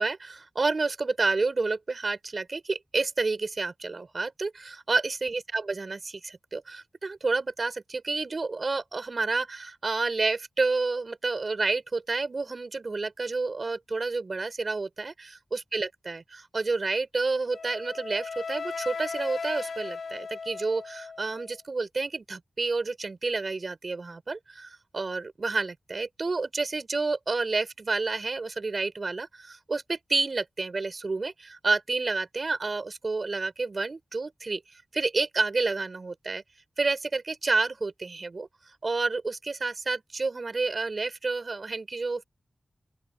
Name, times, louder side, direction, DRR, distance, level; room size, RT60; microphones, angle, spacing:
voice 1, 0.0-34.6 34.9-36.4 36.8-38.5 38.8-42.2, right 3 dB, 55° right, 5.3 m, -29 dB
Wind instrument woodwind instrument, 17.5-21.6, left 5 dB, 85° left, 1.1 m, -37 dB
open air
wide cardioid pair, 65°, 0 cm